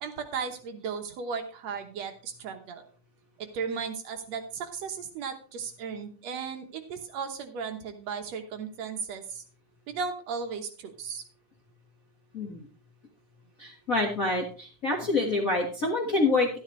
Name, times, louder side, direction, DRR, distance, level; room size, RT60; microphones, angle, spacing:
voice 1, 0.0-2.8 3.4-9.4 9.9-11.2, right 5 dB, 65° right, 5 dB, 2.1 m, -36 dB
voice 2, 12.3-12.7 13.6-16.5, left 2 dB, 40° left, -1 dB, 1.3 m, -27 dB
11.5 x 11.0 x 3.1 m, 0.40 s
omnidirectional pair, 3.5 m